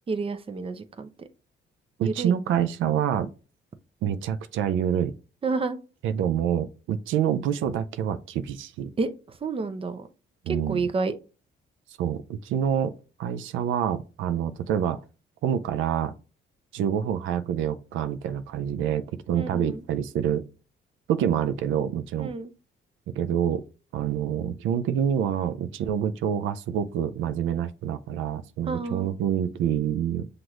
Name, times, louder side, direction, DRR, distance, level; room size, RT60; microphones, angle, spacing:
voice 1, 0.1-1.1 2.0-2.3 5.4-5.8 9.0-10.1 10.5-11.1 19.3-19.8 22.2-22.5 28.7-29.1, right 4 dB, 30° right, 0.5 m, -30 dB
voice 2, 2.0-3.3 4.0-5.1 6.0-8.9 10.5-10.9 12.0-12.9 13.2-15.0 15.4-16.1 16.7-20.4 21.1-22.3 23.2-23.6 23.9-30.3, right 9 dB, 80° right, 0.4 m, -27 dB
6.1 x 2.5 x 2.9 m
cardioid pair, 90°, 20 cm